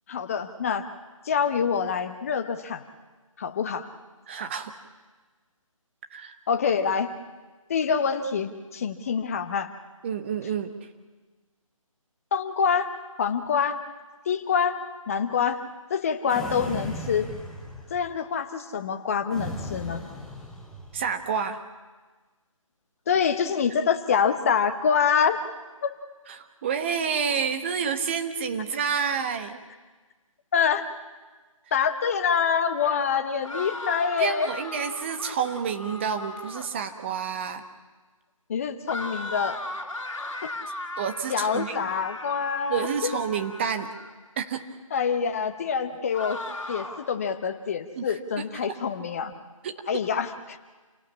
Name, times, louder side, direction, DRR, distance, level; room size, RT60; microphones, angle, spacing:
voice 1, 0.1-0.9 1.2-2.8 3.4-3.9 6.5-7.1 7.7-9.7 12.3-13.8 14.2-15.6 15.9-17.3 17.9-20.0 23.1-25.4 25.8-25.9 30.5-30.8 31.7-34.5 38.5-39.6 40.4-40.5 41.3-42.9 44.9-46.4 46.7-49.3 49.9-50.6, left 6 dB, 25° left, 8 dB, 1.3 m, -26 dB
voice 2, 4.3-4.7 6.1-6.3 10.0-10.7 20.9-21.6 26.3-29.6 34.2-37.6 41.0-41.9 42.7-43.9 44.4-44.7 48.0-48.1 48.6-48.8 49.6-49.7, right 7 dB, 20° right, 7 dB, 1.2 m, -29 dB
sound 1, 16.3-18.2 19.3-21.1, left 1 dB, ahead, 1.2 m, -37 dB
sound 2, 33.4-36.8 38.9-44.1 46.1-47.2, left 2 dB, 60° left, 3.0 m, -37 dB
28.0 x 17.5 x 8.6 m, 1.3 s
figure-of-eight pair, 155°, 18 cm